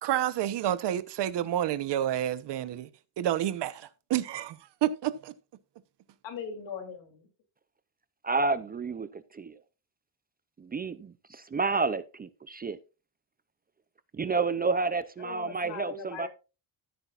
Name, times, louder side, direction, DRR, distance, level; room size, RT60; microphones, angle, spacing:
voice 1, 0.0-2.9 3.2-5.3, right 11 dB, 70° right, 1.0 m, -29 dB
voice 2, 6.2-7.3 14.3-14.7 15.2-16.3, left 6 dB, 85° left, 2.9 m, -40 dB
voice 3, 8.2-9.6 10.6-12.8 14.1-16.3, right 4 dB, 20° right, 0.4 m, -30 dB
14.0 x 8.3 x 2.4 m
cardioid pair, 155°, 44 cm